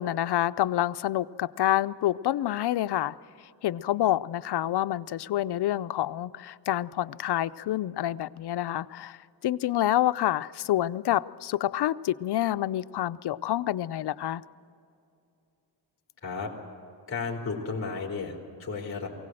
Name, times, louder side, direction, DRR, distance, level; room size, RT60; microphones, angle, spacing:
voice 1, 0.0-3.2 3.6-9.2 9.4-14.4, left 13 dB, 65° left, 14 dB, 0.6 m, -27 dB
voice 2, 17.1-19.1, left 4 dB, 30° left, -1 dB, 3.4 m, -33 dB
23.0 x 17.0 x 7.7 m, 2.7 s
wide cardioid pair, 130°, 43 cm